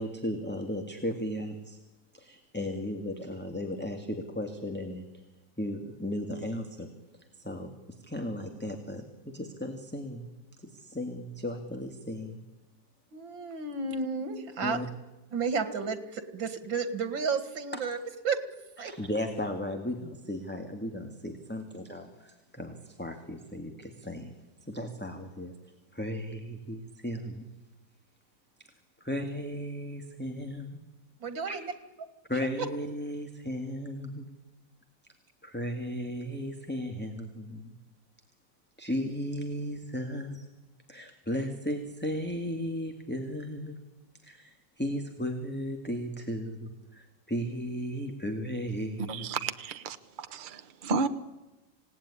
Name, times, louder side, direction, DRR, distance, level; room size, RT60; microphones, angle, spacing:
voice 1, 0.0-1.8 2.1-5.0 5.6-6.9 7.4-7.7 8.0-10.3 10.6-12.4 14.6-14.9 17.7-17.8 18.8-24.3 24.7-25.5 25.9-27.5 29.0-30.8 31.5-31.6 32.3-34.3 35.4-37.7 38.8-40.5 40.9-43.8 44.2-49.3, equal, 5° left, 1.8 m, -35 dB
voice 2, 13.1-14.8 15.3-18.0 18.2-18.9 31.2-31.7, right 5 dB, 90° right, 2.6 m, -32 dB
voice 3, 49.1-51.1, right 4 dB, 35° right, 1.0 m, -32 dB
26.5 x 18.0 x 9.9 m
omnidirectional pair, 2.0 m